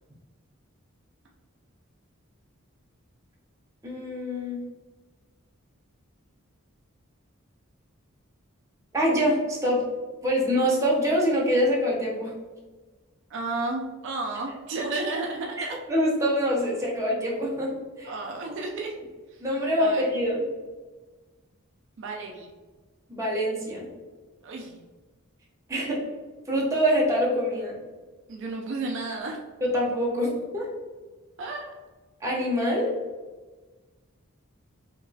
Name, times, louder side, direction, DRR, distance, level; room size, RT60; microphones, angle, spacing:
voice 1, 3.8-4.6 8.9-9.8 10.2-12.3 15.6-18.1 19.4-20.4 23.1-23.8 25.7-26.0 26.5-27.8 29.7-30.7 32.2-32.9, equal, 15° right, -4 dB, 0.7 m, -25 dB
voice 2, 13.3-15.8 18.0-19.0 19.3-19.4 19.8-20.0 22.0-22.5 24.4-24.8 28.3-29.4 31.4-31.7, right 3 dB, 55° right, 0 dB, 0.4 m, -32 dB
2.9 x 2.8 x 2.7 m, 1.3 s
head